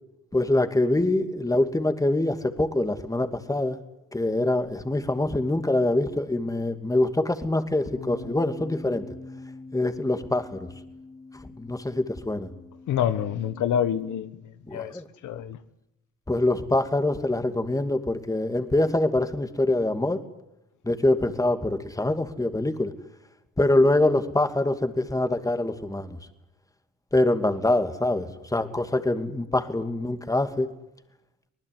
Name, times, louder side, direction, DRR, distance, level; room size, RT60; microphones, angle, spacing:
voice 1, 0.3-3.8 4.1-9.0 9.7-10.7 11.6-12.5 14.7-15.1 16.3-20.2 20.8-22.9 23.6-26.2 27.1-30.7, left 2 dB, 10° left, 8 dB, 2.6 m, -24 dB
sound 1, 7.9-14.2, left 2 dB, 45° left, 4.6 m, -44 dB
voice 2, 12.9-14.4 14.7-15.6, left 9 dB, 80° left, 12 dB, 1.4 m, -27 dB
25.0 x 19.5 x 9.5 m, 0.86 s
cardioid pair, 90°, 30 cm